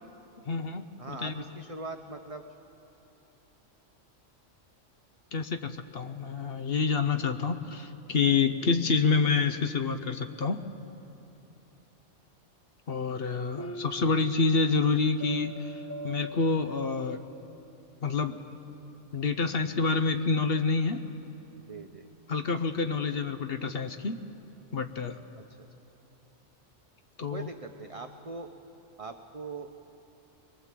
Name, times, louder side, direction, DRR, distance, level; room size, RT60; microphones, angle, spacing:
voice 1, 0.5-1.4 5.3-10.6 12.9-17.2 18.0-18.4 19.1-21.0 22.3-24.2 24.7-25.2 27.2-27.5, left 4 dB, 55° left, 8 dB, 1.0 m, -28 dB
voice 2, 1.0-2.4 21.6-22.1 25.4-25.5 27.3-28.5 29.0-29.7, right 3 dB, 35° right, 5 dB, 0.7 m, -41 dB
sound 1, 13.6-17.4, right 2 dB, 25° left, 0.3 m, -43 dB
24.0 x 22.0 x 7.5 m, 3.0 s
omnidirectional pair, 1.3 m